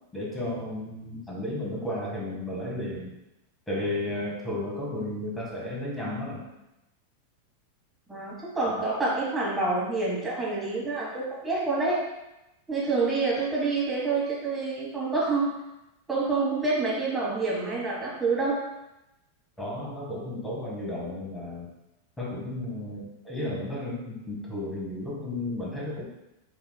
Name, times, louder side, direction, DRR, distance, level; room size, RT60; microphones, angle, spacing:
voice 1, 0.1-3.1 3.7-6.5 8.6-8.9 19.6-21.7 22.2-26.0, left 1 dB, 10° left, -4 dB, 1.2 m, -33 dB
voice 2, 8.1-12.0 12.7-15.5 16.1-18.6, right 3 dB, 10° right, -6 dB, 1.4 m, -27 dB
5.6 x 3.0 x 2.2 m, 0.93 s
figure-of-eight pair, 90°, 0 cm